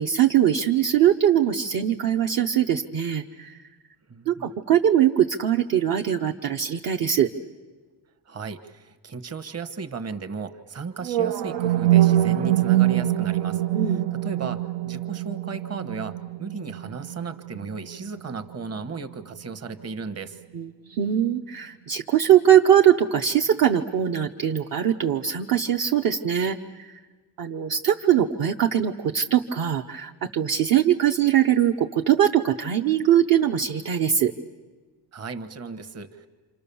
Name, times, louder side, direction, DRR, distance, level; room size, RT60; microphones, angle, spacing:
voice 1, 0.0-3.6 4.3-7.3 13.7-14.1 20.5-27.0 27.4-34.3, right 10 dB, 50° right, 3 dB, 0.9 m, -21 dB
voice 2, 4.1-4.5 8.3-20.4 35.1-36.3, right 4 dB, 35° right, 12 dB, 1.3 m, -35 dB
sound 1, 11.0-19.1, right 14 dB, 85° right, 0.9 m, -24 dB
28.5 x 27.0 x 7.0 m, 1.3 s
cardioid pair, 160°, 43 cm